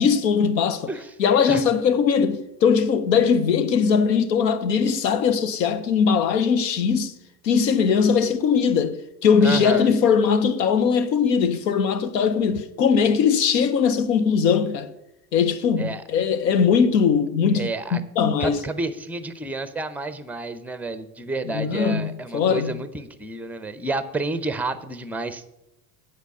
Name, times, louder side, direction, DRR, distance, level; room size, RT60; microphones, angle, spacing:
voice 1, 0.0-0.9 1.2-7.1 7.4-14.9 15.3-18.6 21.5-22.8, left 6 dB, 85° left, 0.8 m, -20 dB
voice 2, 9.4-9.9 15.8-16.0 17.5-18.0 18.4-25.5, right 2 dB, 5° right, 0.5 m, -30 dB
8.1 x 4.9 x 6.9 m
hypercardioid pair, 75°, 49 cm